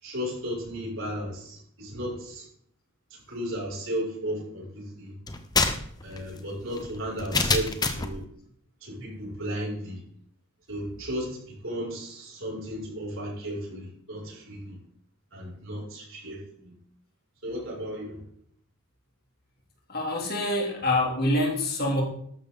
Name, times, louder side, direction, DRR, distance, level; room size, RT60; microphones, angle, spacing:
voice 1, 0.0-2.4 3.1-5.1 6.0-8.3 8.8-10.0 10.7-14.8 15.3-16.8 17.4-18.2, equal, 60° right, -3 dB, 6.7 m, -34 dB
sound 1, 5.3-8.2, left 3 dB, 20° left, 1.0 m, -27 dB
voice 2, 19.9-22.0, left 1 dB, 45° left, 0 dB, 3.2 m, -26 dB
13.0 x 12.0 x 4.0 m, 0.64 s
head